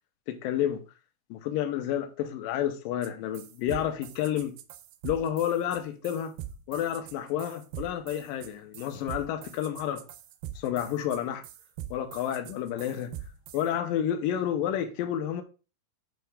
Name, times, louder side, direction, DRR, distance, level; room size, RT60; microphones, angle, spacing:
voice 1, 0.3-0.8 1.3-4.6 5.0-6.3 6.7-10.0 10.6-11.4 11.9-13.1 13.5-15.4, left 10 dB, 80° left, 2.1 m, -30 dB
sound 1, 3.0-3.1 3.3-13.7, right 11 dB, 90° right, 2.7 m, -42 dB
7.9 x 4.8 x 3.4 m
omnidirectional pair, 4.5 m